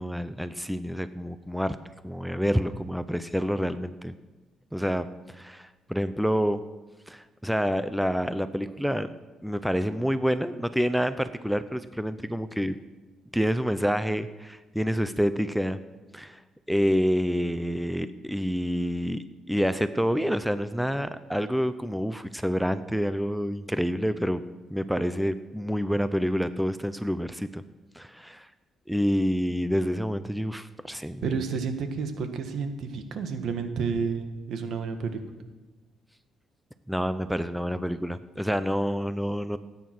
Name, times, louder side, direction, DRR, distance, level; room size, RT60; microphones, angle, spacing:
voice 1, 0.0-1.8 2.0-4.1 4.7-6.6 7.1-9.1 9.4-12.8 13.3-15.8 16.1-16.4 16.7-24.4 24.7-27.6 27.9-28.5 28.9-31.2 36.9-39.6, equal, ahead, 12 dB, 0.6 m, -28 dB
voice 2, 31.2-35.2, right 5 dB, 70° right, 7 dB, 1.6 m, -30 dB
17.5 x 9.4 x 6.1 m, 1.2 s
cardioid pair, 90°, 0 cm